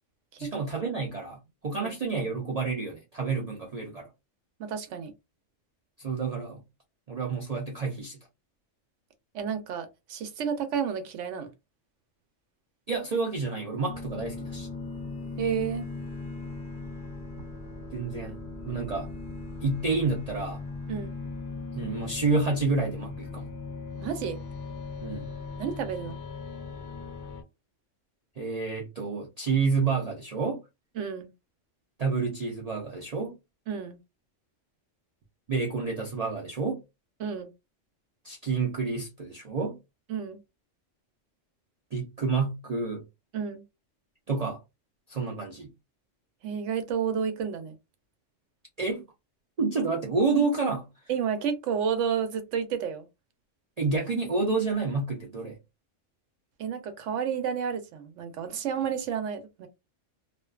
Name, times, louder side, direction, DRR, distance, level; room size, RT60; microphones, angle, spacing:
voice 1, 0.4-4.1 6.0-6.6 7.1-8.2 12.9-14.7 17.9-18.4 18.7-19.1 19.6-20.6 21.7-23.5 25.0-25.3 28.4-30.6 32.0-33.4 35.5-36.8 38.2-39.8 41.9-43.0 44.3-44.6 45.1-45.7 48.8-49.0 49.6-50.9 53.8-55.6, right 4 dB, 55° right, 0.4 m, -29 dB
voice 2, 1.7-2.3 4.6-5.1 9.3-11.5 15.4-15.9 20.9-21.1 24.0-24.4 25.6-26.2 31.0-31.3 33.7-34.0 37.2-37.5 40.1-40.4 43.3-43.6 46.4-47.8 51.1-53.1 56.6-59.7, right 7 dB, 75° right, 0.9 m, -31 dB
sound 1, 13.9-27.4, left 3 dB, 50° left, 0.6 m, -38 dB
2.5 x 2.2 x 2.3 m
omnidirectional pair, 1.3 m